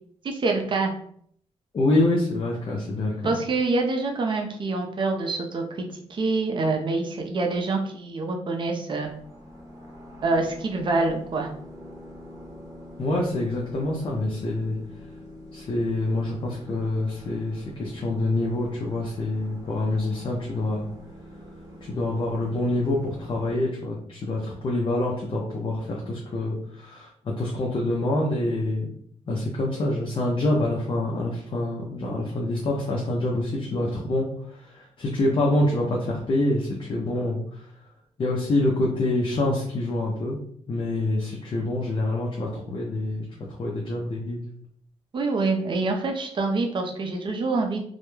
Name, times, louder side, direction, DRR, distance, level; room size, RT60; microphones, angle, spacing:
voice 1, 0.2-0.9 3.2-9.1 10.2-11.5 45.1-47.8, right 3 dB, 45° right, 3 dB, 0.5 m, -26 dB
voice 2, 1.7-3.4 13.0-14.8 15.5-20.9 21.9-28.9 29.3-37.6 38.2-40.4 40.7-44.4, left 2 dB, 45° left, -3 dB, 0.5 m, -26 dB
sound 1, 9.0-23.6, left 1 dB, 25° right, 0.9 m, -45 dB
2.3 x 2.1 x 3.0 m, 0.64 s
wide cardioid pair, 115°, 12 cm